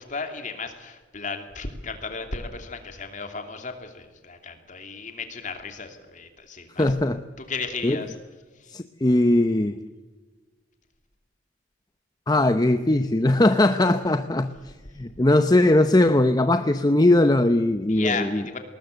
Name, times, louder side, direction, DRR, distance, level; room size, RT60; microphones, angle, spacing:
voice 1, 0.0-6.9 7.4-8.1 8.6-8.7 17.9-18.6, left 4 dB, 40° left, 6 dB, 2.9 m, -34 dB
voice 2, 6.8-7.2 7.8-8.0 8.7-9.8 12.3-14.5 15.0-18.4, left 1 dB, 20° left, 9 dB, 0.7 m, -20 dB
20.5 x 19.5 x 8.0 m, 1.3 s
head